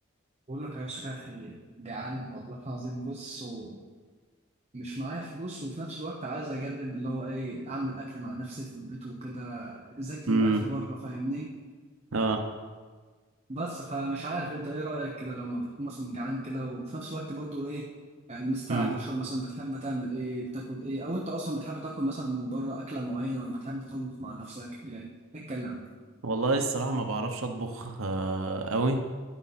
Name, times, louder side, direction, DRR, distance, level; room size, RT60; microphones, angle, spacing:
voice 1, 0.5-3.8 4.7-11.5 13.5-17.9 18.3-25.9, right 1 dB, 35° right, -2 dB, 1.0 m, -35 dB
voice 2, 10.3-10.6 12.1-12.4 18.7-18.9 26.2-29.0, right 3 dB, 90° right, 5 dB, 0.9 m, -27 dB
11.5 x 9.9 x 4.2 m, 1.5 s
head